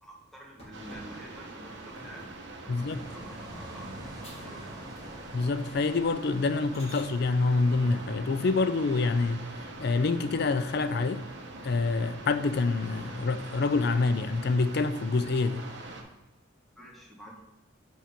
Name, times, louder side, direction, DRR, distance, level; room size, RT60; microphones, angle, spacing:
voice 1, 0.0-2.3 2.6-4.8 16.7-17.4, right 1 dB, ahead, 1.4 m, -48 dB
sound 1, 0.6-2.4 2.9-3.3 3.7-3.8 4.2-4.6 4.9-5.4 5.7-5.9 6.4-7.1 9.1-9.8 10.2-10.3 10.7-10.8 11.1-11.9 12.3-12.9 13.3-13.9 14.5-16.2, equal, 30° left, 2.7 m, -53 dB
sound 2, 0.7-16.0, right 2 dB, 60° right, 1.4 m, -44 dB
voice 2, 2.7-3.0 5.3-9.4 9.8-11.3 11.6-15.7, left 3 dB, 55° left, 0.4 m, -26 dB
sound 3, 2.8-8.1, right 1 dB, 20° right, 1.7 m, -47 dB
7.5 x 4.3 x 5.2 m
head